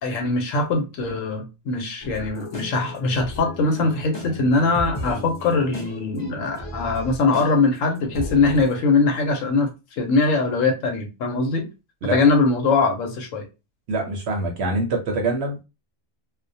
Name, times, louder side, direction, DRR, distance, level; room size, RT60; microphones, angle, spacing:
voice 1, 0.0-11.7 12.1-13.5, left 3 dB, 70° left, 1.0 m, -22 dB
sound 1, 2.0-8.8, left 1 dB, 30° left, 0.5 m, -35 dB
voice 2, 13.9-15.6, right 2 dB, 60° right, 0.7 m, -24 dB
2.3 x 2.1 x 2.6 m
omnidirectional pair, 1.4 m